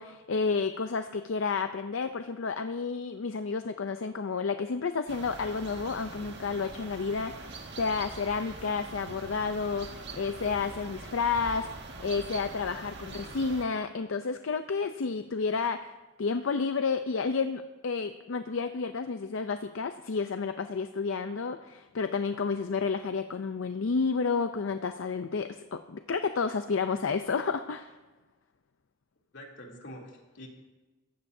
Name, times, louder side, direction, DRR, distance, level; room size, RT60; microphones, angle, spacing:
voice 1, 0.0-11.7 12.0-15.9 16.2-27.9, left 5 dB, 85° left, 9 dB, 0.5 m, -31 dB
sound 1, 5.1-13.6, right 3 dB, 60° right, 1.8 m, -43 dB
voice 2, 29.3-30.5, equal, 65° left, -1 dB, 3.0 m, -46 dB
21.0 x 15.0 x 2.7 m, 1.2 s
head